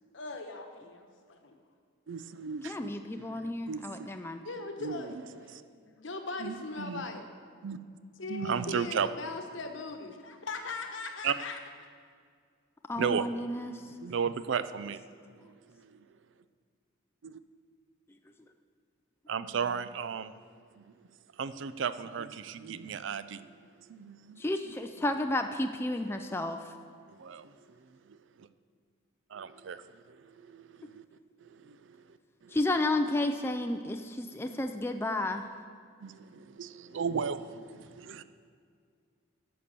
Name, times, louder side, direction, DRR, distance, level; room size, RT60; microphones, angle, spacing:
voice 1, 0.1-1.5 4.4-5.2 5.6-7.3 8.2-11.6, left 3 dB, 65° left, 5 dB, 1.1 m, -39 dB
voice 2, 2.1-2.9 3.2-4.1 4.8-5.2 5.5-5.6 6.4-7.1 7.6-7.8 8.3-9.1 11.2-11.3 12.9-15.0 15.3-16.1 17.2-17.4 19.3-20.3 20.7-21.1 21.3-23.5 23.8-24.7 27.1-27.9 29.3-31.0 31.4-32.6 34.4-34.6 36.0-38.2, right 6 dB, 65° right, 13 dB, 0.4 m, -36 dB
voice 3, 2.6-4.4 12.9-13.8 24.4-26.7 32.5-35.5, left 1 dB, 10° left, 6 dB, 0.4 m, -32 dB
11.0 x 6.9 x 6.7 m, 2.1 s
head